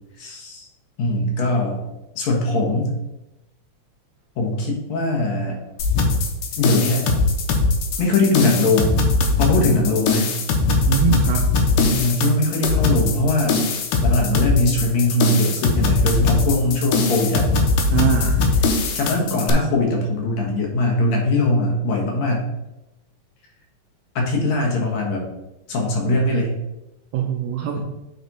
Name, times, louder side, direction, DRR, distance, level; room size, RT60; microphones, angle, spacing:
voice 1, 0.2-0.7 1.0-1.8 2.2-3.0 4.4-5.6 6.6-7.1 8.0-9.0 9.4-10.4 11.8-13.6 14.0-17.5 18.9-22.5 24.2-25.3 25.7-26.6, left 2 dB, 65° left, 0 dB, 2.4 m, -21 dB
sound 1, 5.8-19.5, left 3 dB, 85° left, 2.5 m, -20 dB
voice 2, 10.9-11.5 17.9-18.4 27.1-27.8, right 8 dB, 80° right, 2 dB, 1.6 m, -22 dB
9.3 x 4.1 x 4.1 m, 0.93 s
omnidirectional pair, 3.6 m